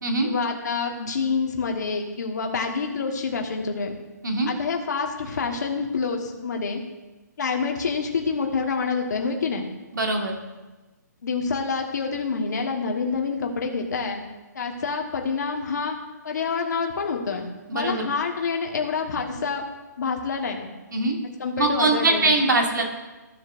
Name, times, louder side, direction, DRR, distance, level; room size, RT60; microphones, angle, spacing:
voice 1, 0.2-4.0 4.5-6.8 7.4-9.6 11.2-14.3 14.5-16.0 16.2-19.6 20.0-20.7 21.4-22.3, left 5 dB, 70° left, 2 dB, 1.4 m, -27 dB
voice 2, 9.9-10.3 17.7-18.1 20.9-21.2 21.6-22.8, right 2 dB, 90° right, 2 dB, 1.8 m, -22 dB
14.5 x 7.4 x 2.6 m, 1.2 s
hypercardioid pair, 155°, 10 cm